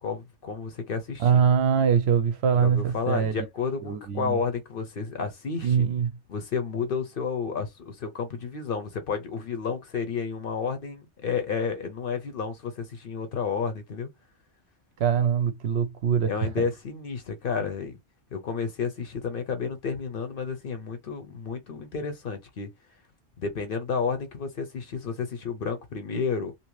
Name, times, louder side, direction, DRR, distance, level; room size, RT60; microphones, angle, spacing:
voice 1, 0.0-1.4 2.6-5.9 6.3-14.1 16.3-18.0 18.3-22.7 23.4-26.5, left 5 dB, 55° left, 0.8 m, -31 dB
voice 2, 1.2-3.5 3.8-4.4 5.6-6.1 15.0-16.5, right 7 dB, 65° right, 0.8 m, -23 dB
2.7 x 2.7 x 3.0 m
omnidirectional pair, 1.2 m